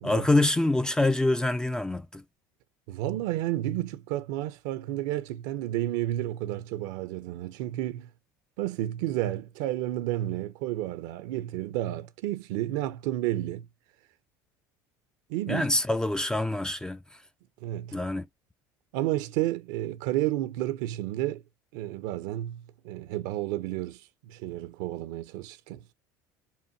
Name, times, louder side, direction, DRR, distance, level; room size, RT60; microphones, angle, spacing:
voice 1, 0.0-2.2 15.5-17.0 17.9-18.3, left 2 dB, 5° left, 0.4 m, -25 dB
voice 2, 2.9-8.1 8.6-13.7 15.3-15.7 17.6-18.0 18.9-21.4 21.7-25.8, right 14 dB, 75° right, 0.7 m, -31 dB
5.5 x 2.3 x 2.7 m
supercardioid pair, 85°, 10 cm